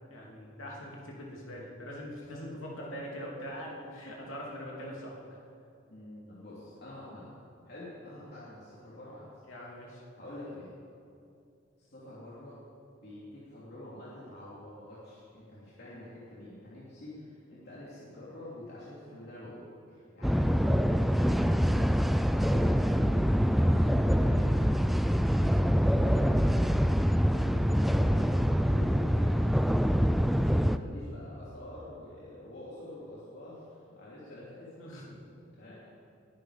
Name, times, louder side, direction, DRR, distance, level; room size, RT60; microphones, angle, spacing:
voice 1, 0.1-5.2 9.5-10.0 34.8-35.2 35.7-35.8, equal, 85° left, -3 dB, 2.9 m, -42 dB
voice 2, 5.9-7.3 7.7-9.3 10.2-10.7 11.8-12.6 13.0-22.0 22.3-24.6 25.4-26.6 27.0-29.5 30.3-34.7 35.6-35.7, left 1 dB, 55° left, -8 dB, 3.0 m, -46 dB
sound 1, 20.2-30.8, equal, ahead, 0.4 m, -25 dB
20.5 x 10.5 x 5.1 m, 2.5 s
head